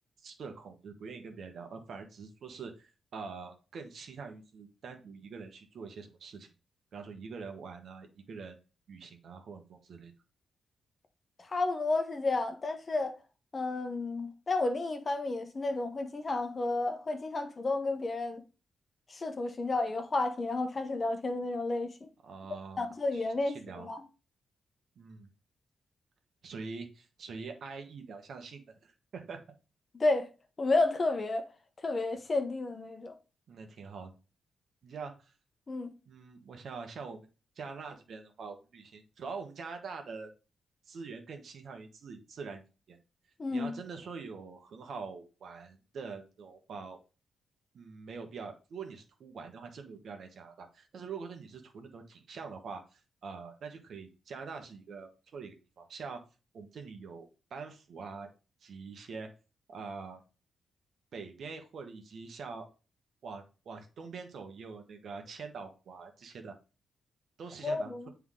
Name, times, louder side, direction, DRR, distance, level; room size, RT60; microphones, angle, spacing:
voice 1, 0.2-6.5 6.9-8.6 8.9-10.1 22.2-23.9 25.0-25.3 26.4-29.4 33.5-34.1 34.8-35.3 36.1-37.3 37.6-40.3 40.9-42.6 42.9-43.0 43.5-47.0 47.7-56.2 56.5-58.3 58.6-59.3 59.7-60.2 61.1-62.6 63.2-66.5 67.4-68.1, right 5 dB, 65° right, 1.3 m, -44 dB
voice 2, 11.4-13.2 13.5-18.4 19.1-22.1 22.8-24.0 29.9-30.3 30.6-31.5 31.8-33.2 35.7-35.9 43.4-43.8 67.6-68.1, left 2 dB, 35° left, 0.9 m, -31 dB
7.9 x 3.5 x 3.7 m
cardioid pair, 105°, 0 cm